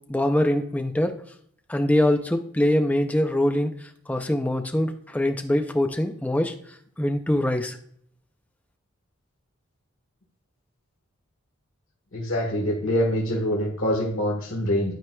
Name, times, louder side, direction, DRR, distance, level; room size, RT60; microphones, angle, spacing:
voice 1, 0.1-1.2 1.7-3.7 4.1-6.5 7.0-7.8, left 1 dB, 5° left, 6 dB, 0.5 m, -23 dB
voice 2, 12.1-14.9, equal, 75° left, -2 dB, 1.5 m, -25 dB
12.0 x 4.6 x 2.2 m, 0.64 s
head